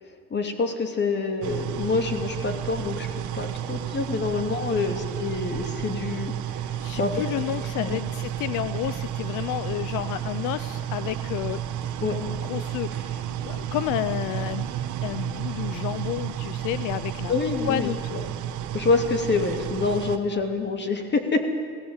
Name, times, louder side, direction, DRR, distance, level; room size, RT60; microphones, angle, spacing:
voice 1, 0.3-3.1 3.3-6.3 6.6-7.2 7.8-8.0 12.0-12.2 17.3-18.2 18.7-21.5, left 4 dB, 35° left, 6 dB, 2.8 m, -26 dB
sound 1, 1.4-20.2, right 10 dB, 75° right, 1.6 m, -32 dB
voice 2, 6.8-11.9 12.2-14.7 15.0-17.3 17.6-18.3, left 13 dB, 80° left, 14 dB, 0.7 m, -31 dB
18.5 x 17.0 x 9.0 m, 2.1 s
cardioid pair, 105°, 30 cm